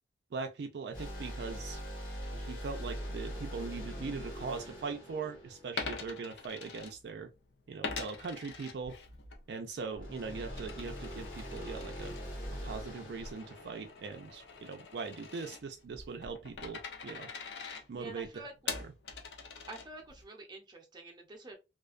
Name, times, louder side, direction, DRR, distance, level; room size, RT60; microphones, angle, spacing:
voice 1, 0.3-1.8 2.3-7.3 7.7-9.0 9.5-12.2 12.6-17.3 17.9-18.9, right 4 dB, 65° right, 0.4 m, -41 dB
sound 1, 0.9-6.4 9.9-14.7, equal, 50° left, 1.1 m, -43 dB
Coin (dropping), 5.7-7.4 7.8-9.4 9.8-20.2, left 5 dB, 75° left, 0.6 m, -44 dB
voice 2, 17.9-18.5 19.7-21.5, right 2 dB, 25° right, 0.6 m, -48 dB
2.4 x 2.2 x 2.4 m
head